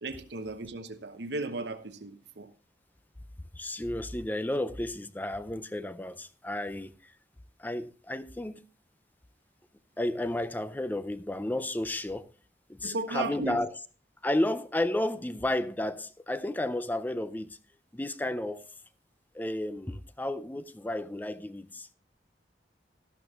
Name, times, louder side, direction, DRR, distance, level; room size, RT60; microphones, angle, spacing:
voice 1, 0.0-2.5 12.8-13.6, right 2 dB, 75° right, 0.9 m, -35 dB
voice 2, 3.5-7.1 7.6-8.6 10.0-12.3 12.7-13.7 14.2-17.6 17.9-18.7 19.3-21.9, left 1 dB, 10° left, 0.4 m, -32 dB
13.0 x 12.0 x 2.4 m
head